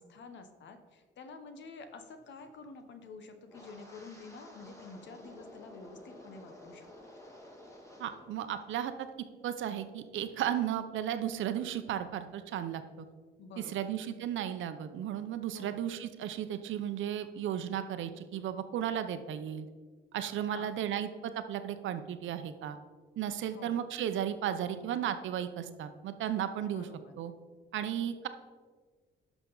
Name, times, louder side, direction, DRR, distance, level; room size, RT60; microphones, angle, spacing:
voice 1, 0.0-6.9 13.4-13.9 15.5-15.9 20.4-20.7 23.5-23.8 26.7-27.1, left 4 dB, 65° left, 8 dB, 0.9 m, -49 dB
Wind, 3.5-8.3 8.6-9.0 9.5-9.8, left 1 dB, 15° left, 2.1 m, -52 dB
voice 2, 8.0-9.1 9.4-13.1 13.7-19.7 20.1-22.8 23.2-26.9 27.2-27.3 27.7-28.3, right 10 dB, 75° right, 10 dB, 0.7 m, -34 dB
11.0 x 5.9 x 3.9 m, 1.5 s
cardioid pair, 90°, 20 cm